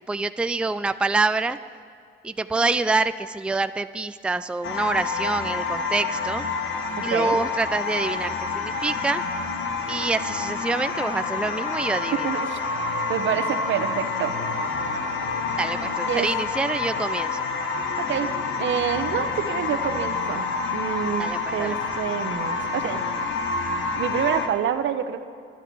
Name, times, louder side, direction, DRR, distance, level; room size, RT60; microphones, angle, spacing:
voice 1, 0.1-1.6 2.2-6.4 7.0-9.2 9.9-12.3 15.6-17.5 21.2-21.8, right 3 dB, 5° right, 11 dB, 0.4 m, -26 dB
sound 1, 4.6-24.5, left 4 dB, 75° left, 1.5 m, -28 dB
voice 2, 7.0-7.4 12.2-12.6 13.1-14.3 16.1-16.3 18.0-18.3 18.6-23.0 24.0-25.2, right 9 dB, 70° right, 10 dB, 1.0 m, -27 dB
23.5 x 11.5 x 4.7 m, 2.2 s
cardioid pair, 90°, 20 cm